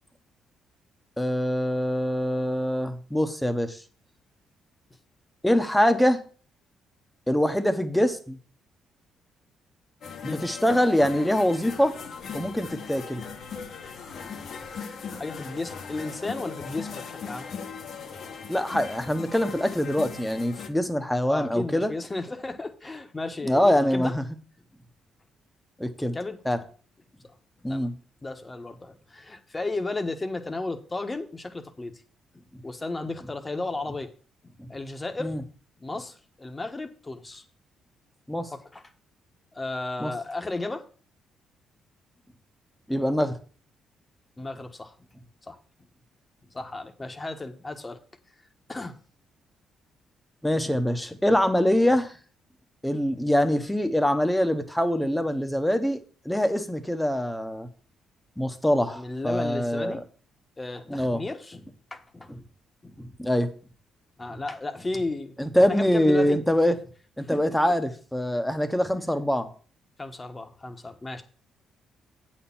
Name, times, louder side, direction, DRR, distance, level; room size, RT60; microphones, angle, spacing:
voice 1, 1.2-3.8 5.4-6.2 7.3-8.4 10.2-11.9 12.3-13.2 18.5-21.9 23.4-24.2 25.8-26.2 26.5-26.6 27.6-27.9 35.2-35.4 38.3-38.5 40.0-40.1 42.9-43.3 50.4-52.1 52.8-56.0 56.2-57.7 58.4-60.0 60.9-61.2 63.0-63.5 65.4-66.8 67.2-69.5, equal, 5° left, 8 dB, 1.1 m, -24 dB
sound 1, 10.0-20.7, left 6 dB, 65° left, 1.3 m, -39 dB
voice 2, 15.1-17.5 21.3-24.1 26.1-26.4 27.7-27.9 28.2-32.0 32.3-34.1 34.4-35.3 35.8-37.4 38.7-38.8 39.5-40.8 44.4-44.9 45.4-45.6 46.5-48.0 48.7-49.0 51.1-51.2 58.9-60.0 60.6-62.3 62.8-63.0 64.2-66.4 67.2-67.7 70.0-71.2, left 2 dB, 20° left, 7 dB, 1.2 m, -34 dB
8.3 x 4.4 x 7.2 m, 0.41 s
cardioid pair, 90°, 0 cm